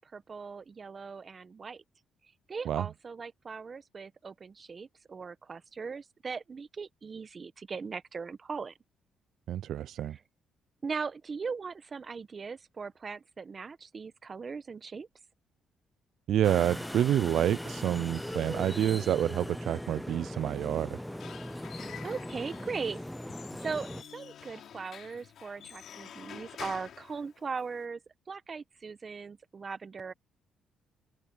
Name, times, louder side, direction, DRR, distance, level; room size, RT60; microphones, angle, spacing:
voice 1, 0.0-1.8 2.5-8.7 10.0-10.2 10.8-15.1 21.8-28.0 28.3-30.1, right 5 dB, 40° right, 1.1 m, -39 dB
voice 2, 9.5-10.2 16.3-21.0, right 11 dB, 75° right, 0.3 m, -28 dB
sound 1, 16.4-24.0, left 1 dB, 5° left, 0.6 m, -39 dB
Squeak / Wood, 20.9-27.8, left 9 dB, 65° left, 3.7 m, -48 dB
open air
cardioid pair, 90°, 0 cm